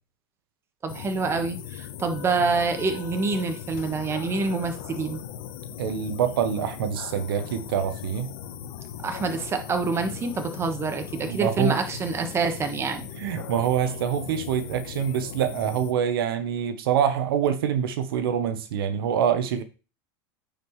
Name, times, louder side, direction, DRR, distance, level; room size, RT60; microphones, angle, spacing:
voice 1, 0.8-5.2 9.0-13.1, right 4 dB, 20° right, 1.3 m, -27 dB
sound 1, 0.9-15.9, left 10 dB, 70° left, 1.0 m, -38 dB
voice 2, 5.8-8.3 11.2-11.8 13.2-19.6, right 8 dB, 80° right, 0.9 m, -25 dB
9.0 x 5.0 x 3.1 m
supercardioid pair, 125°, 12 cm